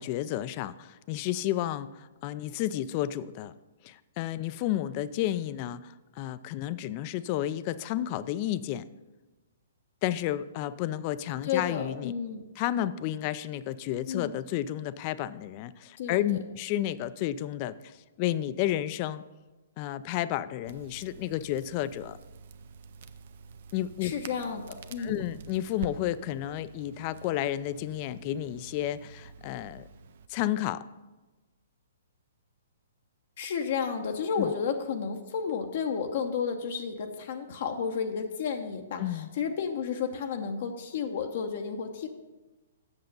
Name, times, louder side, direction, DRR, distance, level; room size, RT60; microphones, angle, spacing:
voice 1, 0.0-3.5 3.8-8.8 10.0-12.1 12.6-19.2 19.8-22.2 23.7-24.1 25.0-29.8 30.3-30.8 34.4-34.5 39.0-39.3, left 13 dB, 40° left, 15 dB, 0.4 m, -31 dB
voice 2, 11.4-12.4 14.1-14.3 16.0-16.4 24.0-25.1 33.4-42.1, left 6 dB, 55° left, 4 dB, 0.8 m, -32 dB
Crackle, 20.7-30.3, right 5 dB, 60° right, 0.5 m, -47 dB
8.1 x 6.5 x 5.4 m, 1.2 s
hypercardioid pair, 125°, 0 cm